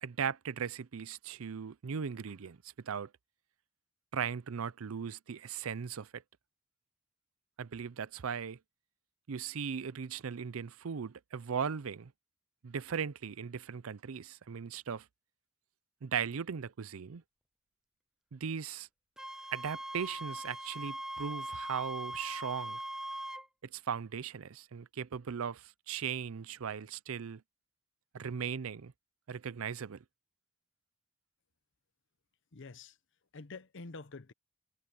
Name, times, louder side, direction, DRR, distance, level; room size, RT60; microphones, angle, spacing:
voice 1, 0.0-2.6 2.8-3.1 4.1-6.2 7.6-8.6 9.3-12.1 12.6-15.1 16.0-17.2 18.3-18.9 19.5-22.8 23.7-27.4 28.1-28.9 29.3-30.0, right 7 dB, 80° right, 0.5 m, -38 dB
Wind instrument woodwind instrument, 19.2-23.5, right 1 dB, 5° right, 0.5 m, -41 dB
voice 2, 32.5-33.0 33.3-34.3, left 3 dB, 60° left, 0.8 m, -47 dB
head